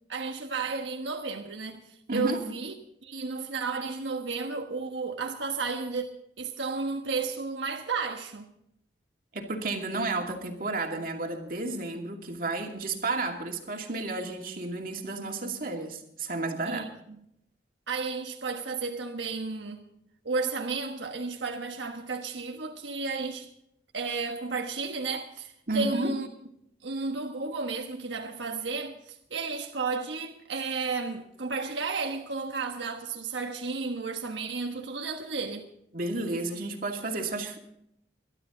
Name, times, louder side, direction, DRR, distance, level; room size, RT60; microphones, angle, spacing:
voice 1, 0.1-2.7 3.0-6.1 6.4-8.5 16.6-16.9 17.9-19.9 20.2-23.5 23.9-26.3 26.8-35.7, right 4 dB, 85° right, 1.3 m, -33 dB
voice 2, 2.1-2.4 9.3-16.9 25.7-26.1 35.9-37.6, right 3 dB, 50° right, 2.5 m, -32 dB
22.5 x 12.5 x 3.9 m
head